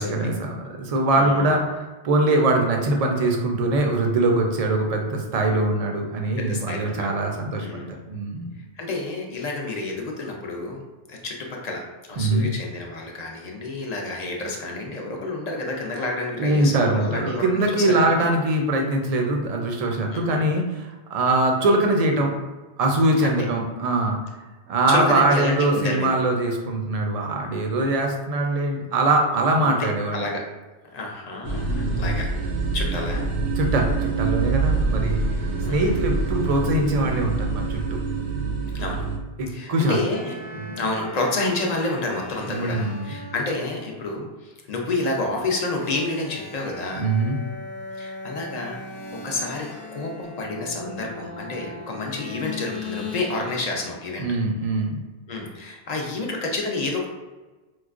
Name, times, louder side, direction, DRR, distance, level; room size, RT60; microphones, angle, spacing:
voice 1, 0.0-1.6 2.0-8.5 12.2-12.5 16.4-22.3 22.8-24.2 24.7-30.3 31.6-32.2 33.6-35.2 35.7-38.0 39.4-40.0 40.5-40.8 42.5-43.1 47.0-47.4 54.2-55.0, right 2 dB, 50° right, 2 dB, 0.5 m, -22 dB
voice 2, 1.2-1.6 6.4-7.1 7.6-8.0 8.8-10.8 11.1-11.8 12.1-18.3 20.1-20.5 23.2-23.5 24.9-26.2 29.7-30.4 30.9-32.3 32.7-33.3 35.6-36.1 38.7-39.0 39.5-40.3 40.8-47.1 48.0-48.8 49.1-54.3 55.3-57.1, left 2 dB, 50° left, 0 dB, 0.6 m, -29 dB
sound 1, 31.4-39.2, right 4 dB, 80° right, 1.0 m, -25 dB
sound 2, 40.1-43.8 45.5-53.9, left 3 dB, 75° left, 0.8 m, -38 dB
4.6 x 2.2 x 2.4 m, 1.2 s
omnidirectional pair, 1.1 m